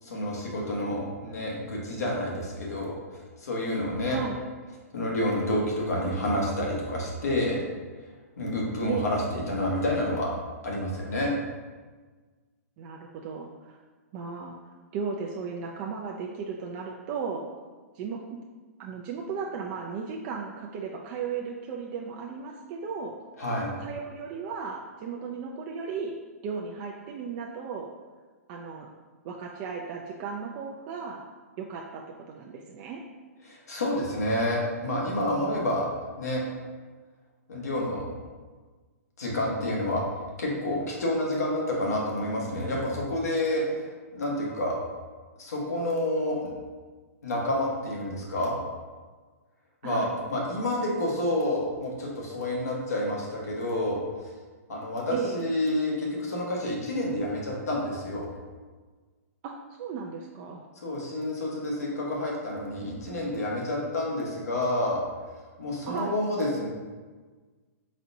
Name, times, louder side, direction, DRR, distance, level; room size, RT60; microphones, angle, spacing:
voice 1, 0.0-3.0 3.4-4.2 4.9-7.6 8.4-10.3 10.6-11.4 23.4-23.7 33.5-35.9 36.2-36.4 37.5-38.0 39.2-40.0 40.4-43.8 44.1-44.8 45.4-46.5 47.2-48.6 49.8-54.0 54.7-58.3 60.8-65.0 65.6-66.7, left 1 dB, 80° left, -3 dB, 1.4 m, -29 dB
voice 2, 4.1-4.4 8.9-9.0 12.8-13.8 14.1-17.5 17.9-18.4 18.8-23.1 23.8-26.1 26.4-27.9 28.5-28.9 29.2-31.2 31.6-33.0 49.8-50.1 55.1-55.5 59.4-60.6 65.9-66.2, right 5 dB, 35° right, -1 dB, 0.4 m, -35 dB
4.1 x 4.1 x 2.7 m, 1.4 s
hypercardioid pair, 135°, 8 cm